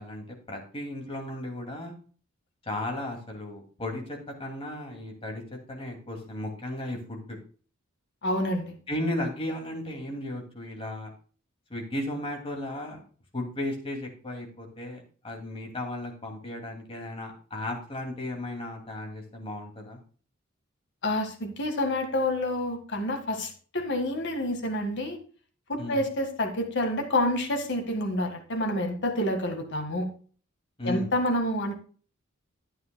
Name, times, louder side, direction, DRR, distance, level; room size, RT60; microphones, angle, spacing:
voice 1, 0.0-1.9 2.6-5.4 5.7-7.4 8.9-11.1 11.7-13.0 13.3-15.0 15.2-20.0 25.8-26.0 30.8-31.1, left 1 dB, 25° left, 1 dB, 2.4 m, -35 dB
voice 2, 8.2-8.8 21.0-25.2 25.7-30.1 30.8-31.8, left 1 dB, 60° left, 5 dB, 1.7 m, -28 dB
11.5 x 9.3 x 2.3 m, 0.40 s
head